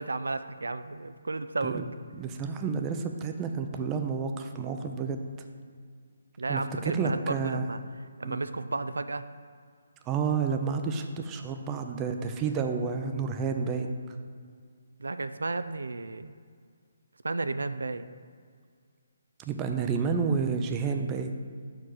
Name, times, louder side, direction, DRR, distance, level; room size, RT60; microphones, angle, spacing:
voice 1, 0.0-1.8 6.4-9.2 15.0-16.3 17.2-18.1, right 3 dB, 85° right, 11 dB, 0.3 m, -33 dB
voice 2, 2.2-5.2 6.5-7.7 8.2-8.4 10.1-13.9 19.5-21.3, right 5 dB, 20° right, 5 dB, 0.5 m, -30 dB
5.7 x 4.6 x 6.3 m, 2.1 s
figure-of-eight pair, 150°, 0 cm